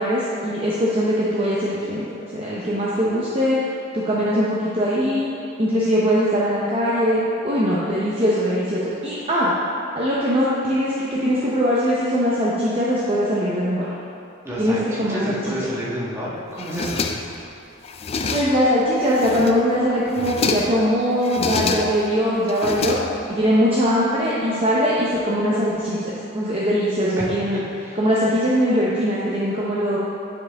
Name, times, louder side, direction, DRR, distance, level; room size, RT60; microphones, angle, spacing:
voice 1, 0.0-3.6 3.9-5.3 5.6-9.5 10.0-13.9 14.6-15.4 18.2-23.0 23.3-27.6 28.0-30.0, equal, 30° right, -7 dB, 0.7 m, -21 dB
voice 2, 14.4-17.1 27.2-28.1, equal, 15° right, -7 dB, 1.4 m, -30 dB
sound 1, 16.6-17.5 17.8-18.7 19.1-19.7 20.1-20.8 21.2-22.1 22.5-23.5, left 4 dB, 30° left, 0.3 m, -27 dB
9.7 x 4.6 x 3.4 m, 2.6 s
head